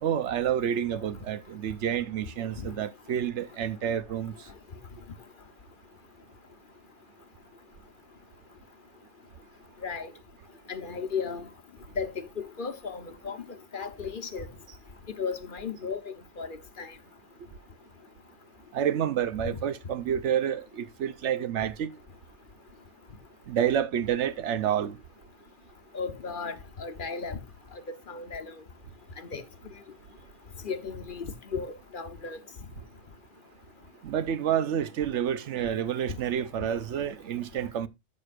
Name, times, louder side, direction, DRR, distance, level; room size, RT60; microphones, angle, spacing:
voice 1, 0.0-4.3 18.7-21.9 23.5-25.0 34.0-37.9, right 9 dB, 75° right, 1.0 m, -29 dB
voice 2, 10.7-11.5 11.9-13.4 13.7-14.5 15.1-16.9 19.5-19.6 25.9-27.4 27.9-28.5 29.2-29.4 30.6-32.4, left 5 dB, 50° left, 1.0 m, -35 dB
13.5 x 6.5 x 2.4 m
omnidirectional pair, 1.2 m